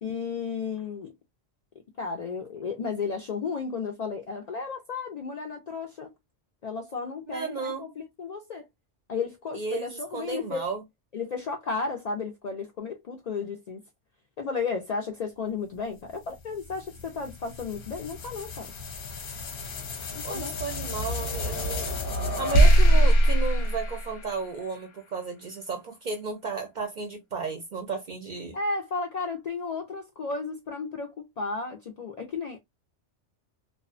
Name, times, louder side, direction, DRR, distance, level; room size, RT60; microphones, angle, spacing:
voice 1, 0.0-1.1 2.0-6.1 6.6-8.7 9.1-10.7 11.1-13.8 14.4-18.7 20.1-20.5 28.5-32.6, left 4 dB, 70° left, 0.3 m, -33 dB
voice 2, 7.3-7.9 9.5-10.8 20.2-22.0 22.4-28.6, right 5 dB, 50° right, 0.6 m, -33 dB
sound 1, 16.1-24.7, right 1 dB, 55° left, 0.8 m, -25 dB
2.6 x 2.1 x 2.4 m
omnidirectional pair, 1.3 m